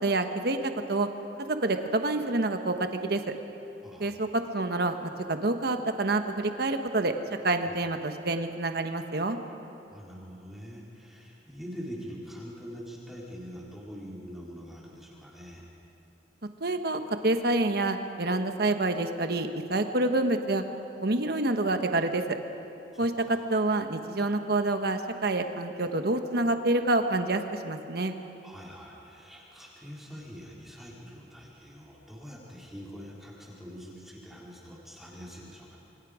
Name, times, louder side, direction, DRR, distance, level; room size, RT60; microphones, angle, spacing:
voice 1, 0.0-1.1 1.5-3.3 4.0-7.1 7.4-9.4 16.6-20.6 21.0-22.4 23.0-28.1, right 2 dB, 65° right, 7 dB, 1.3 m, -27 dB
voice 2, 3.8-4.1 7.6-7.8 9.9-15.6 22.9-23.4 28.4-35.8, equal, ahead, -5 dB, 3.9 m, -44 dB
28.0 x 24.0 x 5.0 m, 2.8 s
head